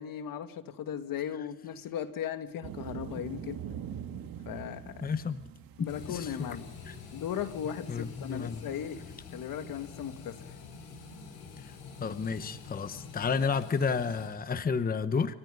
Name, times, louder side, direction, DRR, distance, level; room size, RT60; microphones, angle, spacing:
voice 1, 0.0-3.7 4.5-5.1 5.8-6.7 7.1-9.0 9.3-10.6, left 9 dB, 70° left, 9 dB, 2.4 m, -37 dB
sound 1, 2.6-8.1 8.3-8.4 8.6-8.7 8.9-9.0, right 9 dB, 80° right, 2.2 m, -43 dB
voice 2, 5.0-5.4 5.8-6.3 6.9-7.0 7.9-8.6 11.6-11.7 12.0-15.3, left 5 dB, 25° left, 12 dB, 1.0 m, -31 dB
sound 2, 5.9-14.3, left 4 dB, 85° left, 7.9 m, -46 dB
28.0 x 25.0 x 5.4 m, 0.74 s
cardioid pair, 135°, 35 cm